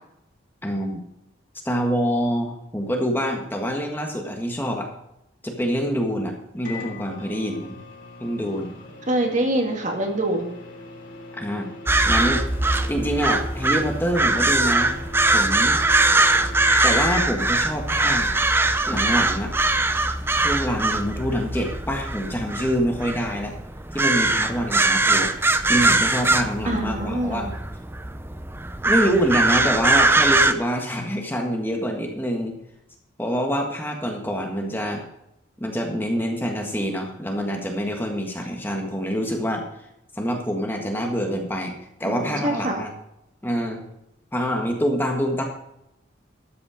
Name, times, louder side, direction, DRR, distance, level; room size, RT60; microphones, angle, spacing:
voice 1, 0.6-1.0 1.6-4.9 5.4-7.8 8.2-8.7 11.3-11.7 12.0-12.5 12.9-14.9 15.3-15.8 16.8-18.3 18.9-19.5 20.3-23.5 23.9-25.3 25.7-27.5 28.8-32.5 33.2-35.0 35.6-39.6 40.1-41.7 42.0-42.9 43.4-43.8 44.3-45.4, equal, 10° left, 2 dB, 1.6 m, -26 dB
Microwave oven, 6.6-17.4, left 4 dB, 45° left, 3.4 m, -38 dB
voice 2, 9.1-10.6 26.7-27.5 42.0-42.8, right 1 dB, 40° right, 2 dB, 2.1 m, -25 dB
sound 1, 11.9-30.5, right 2 dB, 10° right, 0.6 m, -21 dB
13.0 x 8.7 x 5.1 m, 0.83 s
head